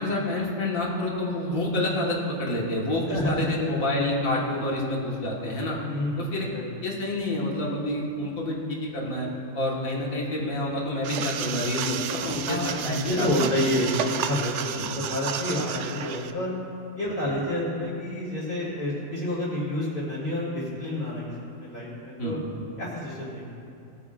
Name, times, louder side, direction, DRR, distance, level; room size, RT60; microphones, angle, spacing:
voice 1, 0.0-5.8 6.2-6.5 6.8-9.3 9.5-13.5 14.8-14.9 22.2-22.4, left 1 dB, 85° left, -3 dB, 2.1 m, -28 dB
voice 2, 3.1-3.5 5.9-6.6 12.5-16.5 16.9-21.3 21.6-22.4 22.8-23.5, left 1 dB, 40° left, -11 dB, 2.4 m, -29 dB
sound 1, 11.0-16.3, right 8 dB, 70° right, 0.8 m, -32 dB
19.5 x 9.3 x 2.5 m, 2.6 s
omnidirectional pair, 1.4 m